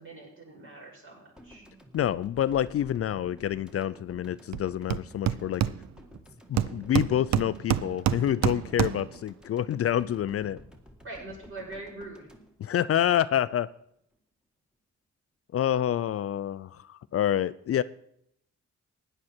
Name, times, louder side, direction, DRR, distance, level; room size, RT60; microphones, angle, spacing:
voice 1, 0.0-1.6 11.0-12.3, right 2 dB, 45° right, -3 dB, 6.9 m, -43 dB
sound 1, 1.4-13.6, equal, 5° right, 1.8 m, -52 dB
voice 2, 1.9-5.6 6.5-10.6 12.6-13.7 15.5-17.8, left 10 dB, 55° left, 16 dB, 0.4 m, -27 dB
Hammer, 4.5-4.6 4.9-6.2 6.6-9.2, right 11 dB, 65° right, 0.5 m, -28 dB
16.0 x 10.0 x 4.4 m, 0.73 s
cardioid pair, 115°, 29 cm